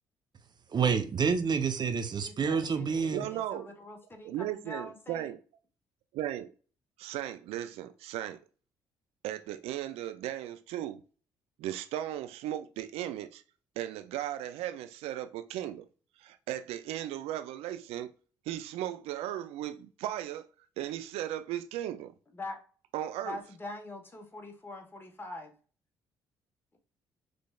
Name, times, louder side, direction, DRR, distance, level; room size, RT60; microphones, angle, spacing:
voice 1, 0.7-3.3, right 6 dB, 45° right, 0.7 m, -28 dB
voice 2, 2.2-5.3 22.3-22.6 23.2-25.5, left 2 dB, 20° left, 1.2 m, -44 dB
voice 3, 3.1-3.7 4.2-5.4 6.1-6.5 7.0-8.4 9.2-11.0 11.6-13.4 13.8-15.9 16.2-18.1 18.5-20.5 20.8-22.1 22.9-23.4, right 12 dB, 75° right, 0.4 m, -36 dB
4.1 x 3.2 x 2.3 m
hypercardioid pair, 55°, 10 cm